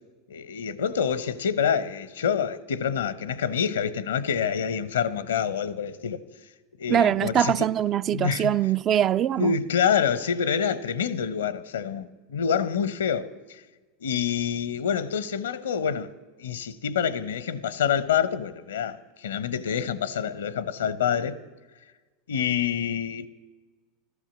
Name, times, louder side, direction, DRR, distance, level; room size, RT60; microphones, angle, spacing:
voice 1, 0.3-6.2 6.8-7.7 8.1-8.5 9.4-13.6 14.0-16.1 16.4-21.4 22.3-23.3, left 7 dB, 80° left, 0.7 m, -27 dB
voice 2, 6.9-9.6, right 10 dB, 40° right, 0.4 m, -23 dB
13.0 x 13.0 x 7.2 m
hypercardioid pair, 90°, 0 cm